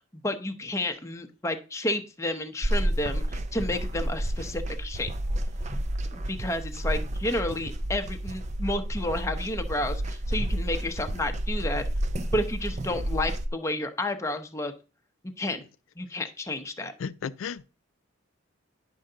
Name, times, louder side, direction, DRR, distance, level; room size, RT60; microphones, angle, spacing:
voice 1, 0.1-5.1 6.1-11.8 12.2-14.7 15.4-15.6 16.0-16.9, left 1 dB, 15° left, 0.7 m, -31 dB
sound 1, 2.6-13.5, right 1 dB, 35° right, 0.5 m, -30 dB
voice 2, 17.0-17.7, left 6 dB, 85° left, 0.4 m, -34 dB
10.0 x 5.5 x 3.8 m
head